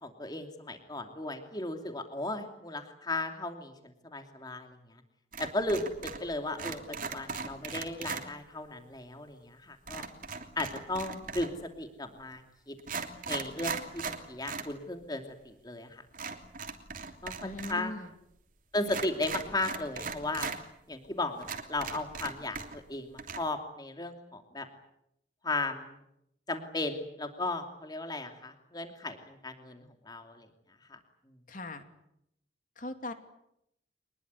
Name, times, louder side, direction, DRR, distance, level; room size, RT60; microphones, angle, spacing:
voice 1, 0.0-4.8 5.4-10.0 10.6-12.4 12.7-12.8 13.3-16.0 17.2-17.9 18.7-20.5 20.9-24.7 25.4-26.0 26.5-30.5 30.9-31.0, left 2 dB, 20° left, 5 dB, 2.8 m, -36 dB
sound 1, 5.3-6.3 6.5-8.3 9.9-11.6 12.3-12.4 12.8-14.7 15.0-15.1 16.1-17.8 18.1-18.2 18.8-20.6 21.0-21.1 21.4-22.9 23.2-23.4, right 5 dB, 45° right, 3.1 m, -38 dB
voice 2, 17.4-18.1 31.5-31.8 32.8-33.1, left 2 dB, 45° left, 7 dB, 2.8 m, -39 dB
25.5 x 21.0 x 9.6 m, 0.78 s
head